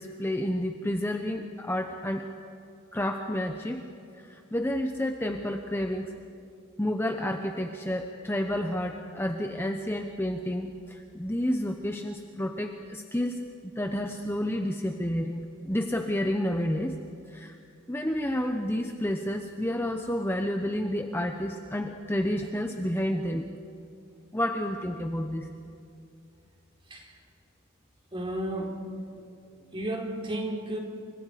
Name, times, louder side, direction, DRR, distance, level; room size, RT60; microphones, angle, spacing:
voice 1, 0.0-2.3 2.9-3.8 4.1-6.1 6.8-17.0 17.3-17.6 17.9-23.5 24.3-25.5, left 1 dB, 10° left, 4 dB, 0.9 m, -30 dB
voice 2, 26.9-27.2 28.1-28.8 29.7-30.8, right 1 dB, 25° right, 0 dB, 3.7 m, -33 dB
29.0 x 25.5 x 5.1 m, 2.5 s
head